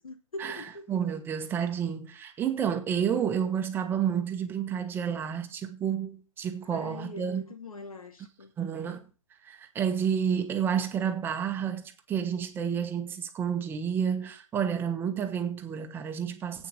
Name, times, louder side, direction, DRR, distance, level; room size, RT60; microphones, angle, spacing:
voice 1, 0.0-0.9 6.7-8.5, left 2 dB, 85° left, 2.5 m, -43 dB
voice 2, 0.9-7.4 8.6-9.1 9.4-16.7, right 8 dB, 10° right, 1.2 m, -30 dB
8.7 x 6.7 x 7.8 m
hypercardioid pair, 145°, 18 cm